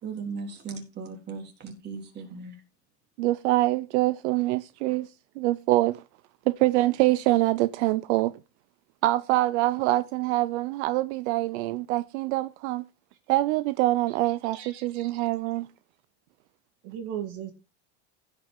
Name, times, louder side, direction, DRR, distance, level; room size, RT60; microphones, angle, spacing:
voice 1, 0.0-2.6, right 4 dB, 30° right, 3.4 m, -37 dB
voice 2, 3.2-5.1 5.4-6.0 6.5-8.4 9.0-12.8 13.3-15.7, right 17 dB, 80° right, 0.6 m, -25 dB
voice 3, 14.5-15.1 16.8-17.5, right 9 dB, 55° right, 1.9 m, -37 dB
16.0 x 5.6 x 3.7 m
cardioid pair, 150°, 34 cm